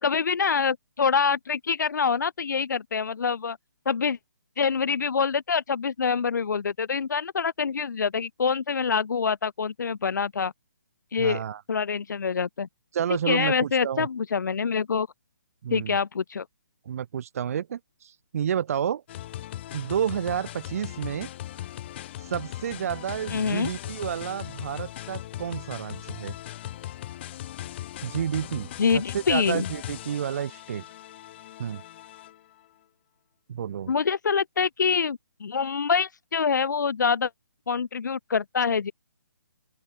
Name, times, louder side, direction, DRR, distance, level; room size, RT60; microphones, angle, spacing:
voice 1, 0.0-3.6 3.8-4.2 4.6-10.5 11.1-11.4 11.7-12.7 13.3-15.1 15.7-16.4 23.3-23.7 28.8-29.7 33.9-37.3 37.7-38.9, left 6 dB, 65° left, 1.4 m, -25 dB
voice 2, 11.2-11.6 12.9-14.1 15.6-16.0 16.8-19.0 19.7-21.3 22.2-26.3 28.0-28.7 28.9-30.8 31.6-31.8 33.5-33.9, right 9 dB, 50° right, 1.6 m, -30 dB
sound 1, 19.1-32.6, left 13 dB, 35° left, 1.0 m, -39 dB
open air
hypercardioid pair, 150°, 10 cm